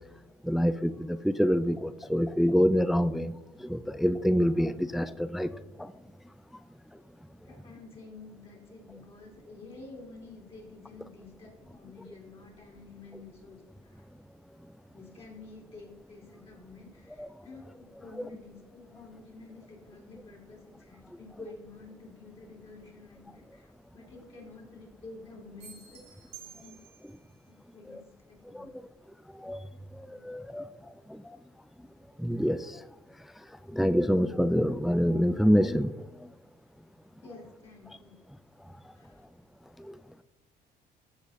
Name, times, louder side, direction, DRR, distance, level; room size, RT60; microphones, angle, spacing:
voice 1, 0.4-5.9 17.2-17.3 27.9-28.0 28.5-28.7 29.3-29.6 29.9-30.7 31.1-31.4 32.2-32.8 33.7-36.3 39.8-40.0, equal, ahead, 14 dB, 0.3 m, -27 dB
voice 2, 7.4-14.1 14.9-26.3 26.6-26.8 27.7-28.7 30.1-30.3 37.2-38.3 38.9-39.2, left 3 dB, 35° left, -1 dB, 3.2 m, -50 dB
sound 1, 25.6-27.2, right 8 dB, 80° right, 2.8 m, -50 dB
14.5 x 5.2 x 4.2 m, 0.90 s
cardioid pair, 110°, 17 cm